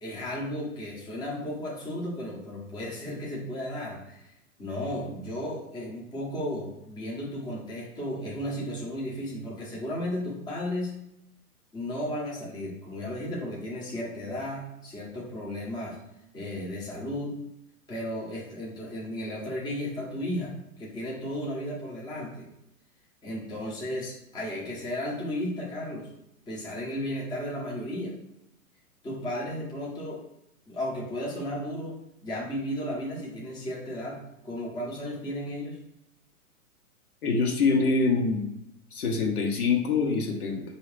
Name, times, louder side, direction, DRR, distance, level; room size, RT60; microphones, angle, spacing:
voice 1, 0.0-4.3 4.6-10.9 11.7-16.0 16.3-17.4 17.9-20.5 20.8-22.5 23.2-26.1 26.5-28.1 29.0-30.2 30.7-35.8, left 1 dB, 10° left, -4 dB, 0.8 m, -34 dB
voice 2, 37.2-38.5 38.9-40.6, left 4 dB, 75° left, 1 dB, 1.2 m, -25 dB
4.8 x 2.7 x 3.3 m, 0.83 s
hypercardioid pair, 125°, 44 cm